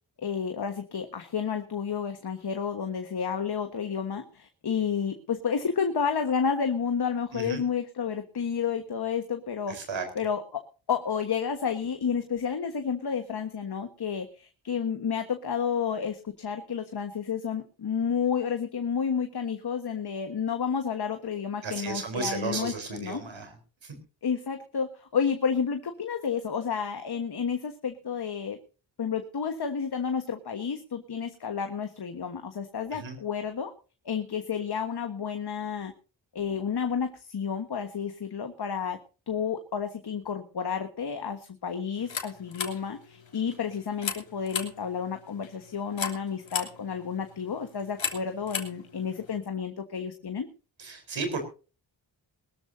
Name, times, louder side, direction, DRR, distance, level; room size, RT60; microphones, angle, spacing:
voice 1, 0.2-9.8 10.1-23.2 24.2-28.6 29.0-33.7 34.0-35.9 36.3-39.0 39.3-50.5, left 6 dB, 55° left, 7 dB, 1.5 m, -31 dB
voice 2, 7.3-7.6 9.7-10.1 21.6-23.5 23.8-24.0 32.9-33.2 50.8-51.4, right 4 dB, 75° right, 6 dB, 4.2 m, -34 dB
sound 1, 42.0-49.4, left 6 dB, 75° left, 3.0 m, -38 dB
22.0 x 13.5 x 2.7 m, 0.35 s
wide cardioid pair, 95°, 46 cm